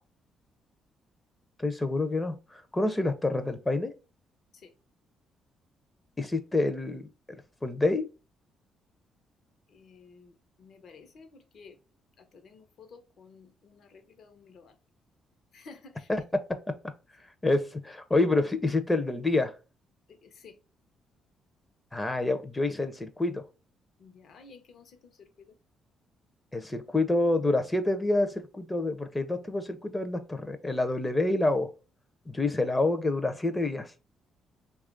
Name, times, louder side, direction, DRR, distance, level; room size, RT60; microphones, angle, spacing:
voice 1, 1.6-3.9 6.2-7.1 7.6-8.1 16.1-16.2 17.4-19.5 21.9-23.4 26.5-31.7 32.3-33.9, left 2 dB, 15° left, 0.5 m, -27 dB
voice 2, 9.7-11.7 12.2-14.7 15.5-16.1 20.2-20.6 24.0-25.1 25.4-25.5, left 4 dB, 65° left, 0.7 m, -53 dB
3.0 x 2.3 x 3.7 m
cardioid pair, 90°, 0 cm